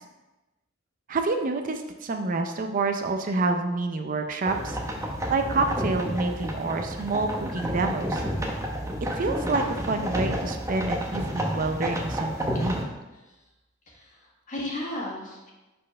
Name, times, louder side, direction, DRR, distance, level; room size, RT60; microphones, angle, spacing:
voice 1, 1.1-4.8 5.3-8.2 9.1-12.8, right 3 dB, 45° right, 6 dB, 0.5 m, -28 dB
sound 1, 4.5-12.8, equal, 15° right, 0.8 m, -30 dB
voice 2, 13.9-15.5, left 1 dB, 40° left, -3 dB, 1.7 m, -35 dB
5.4 x 4.3 x 5.4 m, 1.1 s
head